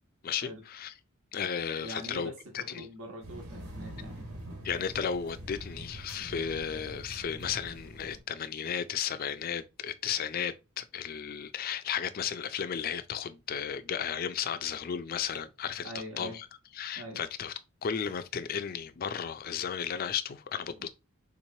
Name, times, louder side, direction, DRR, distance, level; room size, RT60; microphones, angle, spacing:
voice 1, 0.2-0.9 1.3-2.9 4.6-16.5 16.8-17.5 17.8-20.9, left 7 dB, 40° left, 0.3 m, -34 dB
voice 2, 1.8-4.3 15.8-16.4 16.9-17.2 20.8-20.9, right 1 dB, 70° right, 1.0 m, -43 dB
sound 1, 3.2-8.2, right 1 dB, 90° right, 1.3 m, -44 dB
3.7 x 3.0 x 2.7 m
head